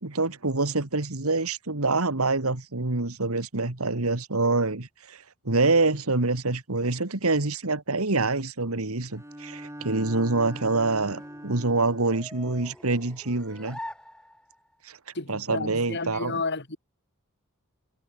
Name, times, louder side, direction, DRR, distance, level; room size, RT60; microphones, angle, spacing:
voice 1, 0.0-13.8 14.8-15.0 15.3-16.4, right 3 dB, 80° right, 2.2 m, -26 dB
Bowed string instrument, 9.1-12.2, right 1 dB, 15° right, 7.8 m, -42 dB
sound 1, 9.9-14.8, left 1 dB, 5° left, 4.0 m, -46 dB
voice 2, 15.1-16.8, left 3 dB, 55° left, 3.3 m, -32 dB
head